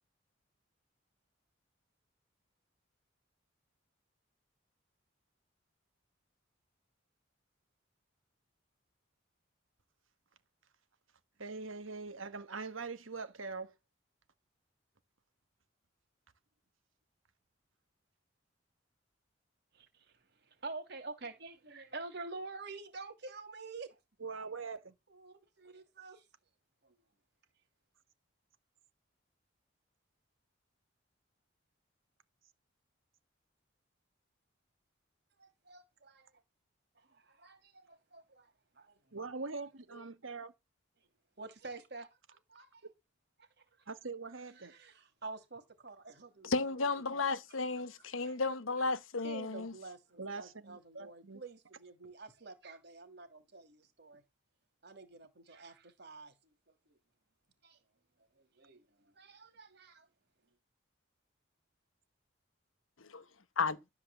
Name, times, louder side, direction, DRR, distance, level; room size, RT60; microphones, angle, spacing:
voice 1, 11.4-13.7 24.2-24.9 39.1-40.5 42.8-42.9 43.9-44.7 50.2-51.4, right 4 dB, 80° right, 1.6 m, -43 dB
voice 2, 20.6-24.0 25.1-26.2 26.8-26.9 35.4-36.3 37.1-38.5 38.8-39.2 39.9-40.0 41.4-42.8 43.6-43.7 44.6-46.7 47.1-47.3 48.2-48.3 49.2-54.2 54.8-56.3 56.9-57.0 57.6-57.8 58.3-58.8 59.1-60.1, right 3 dB, 55° right, 2.9 m, -48 dB
voice 3, 46.4-49.7 63.0-63.2 63.6-63.8, left 3 dB, 85° left, 1.0 m, -33 dB
12.5 x 4.9 x 8.0 m
head